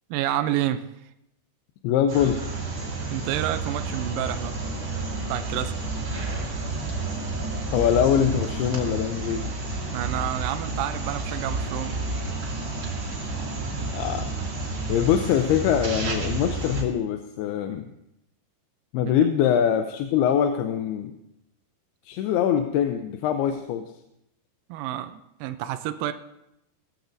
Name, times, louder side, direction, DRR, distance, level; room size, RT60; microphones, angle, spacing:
voice 1, 0.1-0.9 3.1-4.6 5.3-5.9 9.9-12.0 24.7-26.1, right 12 dB, 85° right, 9 dB, 1.9 m, -29 dB
voice 2, 1.8-2.4 7.7-9.4 13.9-14.3 14.9-17.9 18.9-21.1 22.1-23.9, left 9 dB, 80° left, 6 dB, 2.6 m, -23 dB
sound 1, 2.1-16.8, right 3 dB, 35° right, 2.8 m, -30 dB
19.0 x 14.0 x 2.6 m, 0.83 s
omnidirectional pair, 4.7 m